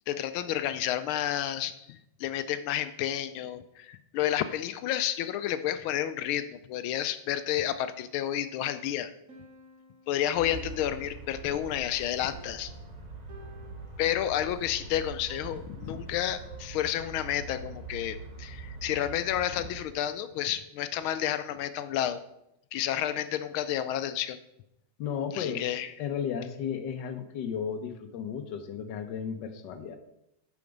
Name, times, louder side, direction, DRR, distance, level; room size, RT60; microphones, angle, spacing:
voice 1, 0.1-9.1 10.1-12.7 14.0-22.2 22.7-24.4 25.3-25.9, left 11 dB, 80° left, 12 dB, 1.4 m, -30 dB
Piano, 9.3-17.1, equal, 45° right, 1.5 m, -53 dB
sound 1, 10.3-19.8, right 3 dB, 60° right, 0.4 m, -43 dB
voice 2, 25.0-30.0, left 7 dB, 65° left, 7 dB, 1.4 m, -34 dB
8.4 x 5.9 x 5.2 m, 0.83 s
omnidirectional pair, 2.3 m